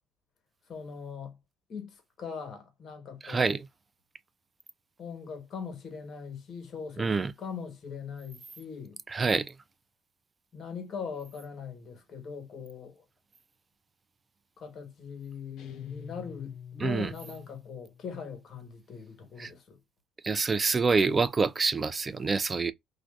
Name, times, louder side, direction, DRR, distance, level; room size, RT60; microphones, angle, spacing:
voice 1, 0.7-1.4 1.7-3.5 5.0-9.0 10.5-13.0 14.6-19.8, left 6 dB, 50° left, 1.1 m, -41 dB
voice 2, 3.2-3.6 7.0-7.3 9.1-9.5 16.8-17.1 19.4-19.5 20.2-22.7, right 4 dB, 25° right, 0.3 m, -26 dB
sound 1, 15.6-18.1, left 8 dB, 70° left, 0.6 m, -46 dB
2.5 x 2.2 x 2.3 m
cardioid pair, 95°, 0 cm